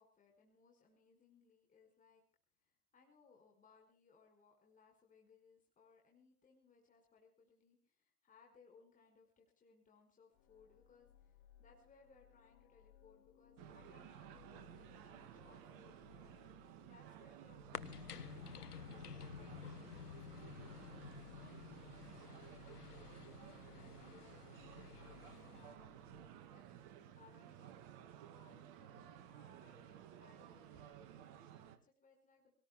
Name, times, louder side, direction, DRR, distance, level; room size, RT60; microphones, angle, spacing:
voice 1, 0.0-2.2 2.6-16.4 16.6-23.1 23.7-26.6 27.2-27.8 28.3-32.5, left 5 dB, 15° left, 1 dB, 5.2 m, -68 dB
sound 1, 10.3-26.3, left 10 dB, 45° left, 3.2 m, -65 dB
sound 2, 13.6-31.8, right 10 dB, 40° right, 2.5 m, -56 dB
sound 3, 17.7-25.8, left 8 dB, 85° left, 1.3 m, -52 dB
28.0 x 19.5 x 2.3 m, 0.39 s
hypercardioid pair, 120°, 45 cm